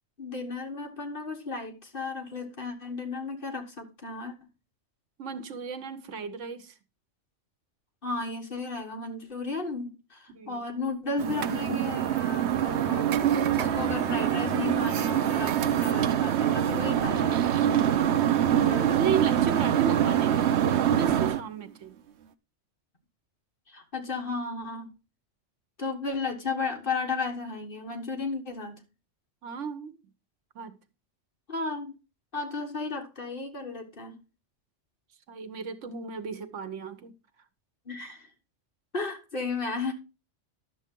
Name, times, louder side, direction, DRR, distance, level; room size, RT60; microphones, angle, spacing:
voice 1, 0.2-4.3 8.0-17.4 18.5-18.9 23.7-24.9 25.8-28.8 31.5-31.9 32.3-34.2 37.9-38.3 38.9-39.9, left 3 dB, 50° left, 1.6 m, -34 dB
voice 2, 5.2-6.7 10.3-10.6 18.3-22.0 29.4-29.9 30.5-30.8 35.3-37.1, right 6 dB, 85° right, 1.3 m, -34 dB
sound 1, 11.2-21.4, right 10 dB, 70° right, 0.9 m, -25 dB
11.5 x 7.0 x 3.7 m
omnidirectional pair, 1.2 m